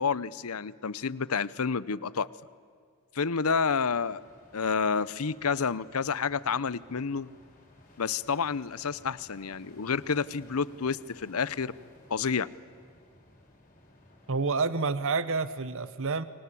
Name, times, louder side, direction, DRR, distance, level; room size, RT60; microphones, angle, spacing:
voice 1, 0.0-2.3 3.1-4.2 4.5-7.3 8.0-11.7 12.1-12.5, left 5 dB, 70° left, 19 dB, 0.8 m, -29 dB
sound 1, 3.8-14.5, left 1 dB, 35° left, 5.9 m, -57 dB
voice 2, 14.3-16.2, right 4 dB, 65° right, 15 dB, 1.0 m, -28 dB
29.0 x 24.0 x 8.5 m, 2.2 s
head